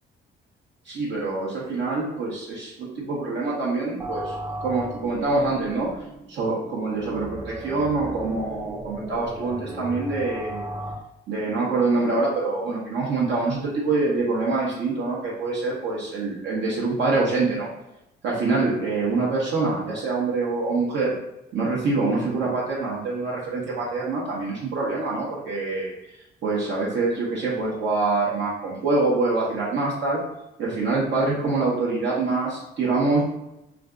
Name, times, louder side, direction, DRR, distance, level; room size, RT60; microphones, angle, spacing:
voice 1, 0.9-4.3 4.6-5.9 6.3-10.6 11.3-17.7 18.2-21.1 21.5-25.9 26.4-30.2 30.6-33.2, right 3 dB, 70° right, -5 dB, 0.9 m, -25 dB
sound 1, 4.0-10.9, right 1 dB, 20° right, 0.5 m, -36 dB
2.5 x 2.3 x 3.6 m, 0.87 s
cardioid pair, 90°, 20 cm